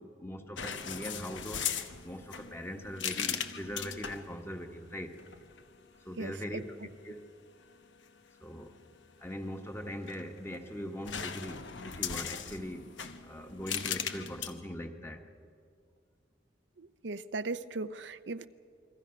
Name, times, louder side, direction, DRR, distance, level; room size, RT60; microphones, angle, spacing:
voice 1, 0.0-1.7 2.0-5.2 6.0-6.8 7.0-7.2 8.4-8.7 9.2-15.2, equal, 15° left, 4 dB, 1.4 m, -41 dB
sound 1, 0.6-4.3 5.2-5.6 9.8-10.6 11.1-14.5, left 8 dB, 90° left, 1.1 m, -38 dB
voice 2, 6.2-6.6 16.8-18.5, right 3 dB, 75° right, 11 dB, 0.7 m, -38 dB
28.5 x 21.5 x 5.9 m, 2.3 s
head